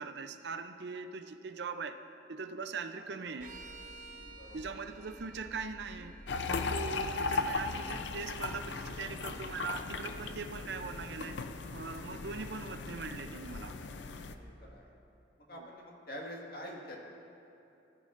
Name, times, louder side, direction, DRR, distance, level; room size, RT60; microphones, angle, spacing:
voice 1, 0.0-2.0 2.3-3.5 4.5-6.2 6.4-11.4 11.7-13.8 15.5-15.7, right 4 dB, 65° right, 9 dB, 0.5 m, -41 dB
sound 1, 3.4-10.8, equal, 10° right, 1.1 m, -54 dB
sound 2, 3.4-7.6, right 4 dB, 45° right, 0.8 m, -54 dB
voice 2, 4.4-4.7 6.9-7.0 14.4-14.8 15.5-17.0, equal, 55° left, -1 dB, 1.8 m, -46 dB
sound 3, 6.3-14.4, left 4 dB, 70° left, 0.5 m, -37 dB
18.5 x 12.0 x 2.5 m, 2.8 s
head